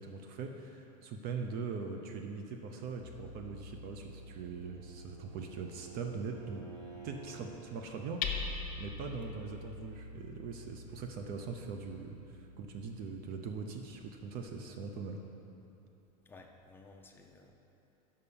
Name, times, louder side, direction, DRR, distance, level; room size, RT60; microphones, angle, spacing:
voice 1, 0.0-6.6 7.0-8.2 8.8-15.2, right 5 dB, 45° right, 4 dB, 0.6 m, -41 dB
Hammer, 3.0-14.7, left 4 dB, 45° left, 0.8 m, -46 dB
Bowed string instrument, 4.0-7.7, right 5 dB, 80° right, 1.7 m, -52 dB
voice 2, 16.3-17.5, left 3 dB, 10° left, 1 dB, 0.7 m, -55 dB
5.5 x 5.4 x 6.8 m, 2.9 s
supercardioid pair, 120°, 21 cm